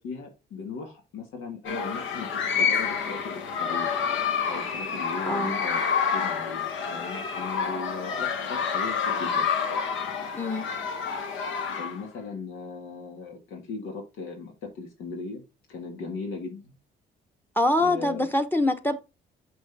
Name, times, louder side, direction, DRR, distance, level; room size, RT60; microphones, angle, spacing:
voice 1, 0.0-3.9 4.4-9.5 11.7-15.4 15.7-16.8 17.8-18.3, left 4 dB, 90° left, 1.8 m, -38 dB
sound 1, 1.6-12.2, left 6 dB, 75° left, 1.4 m, -28 dB
voice 2, 5.3-5.6 10.3-10.6 17.6-18.9, left 1 dB, 10° left, 0.9 m, -24 dB
6.3 x 5.2 x 3.4 m
cardioid pair, 90°, 20 cm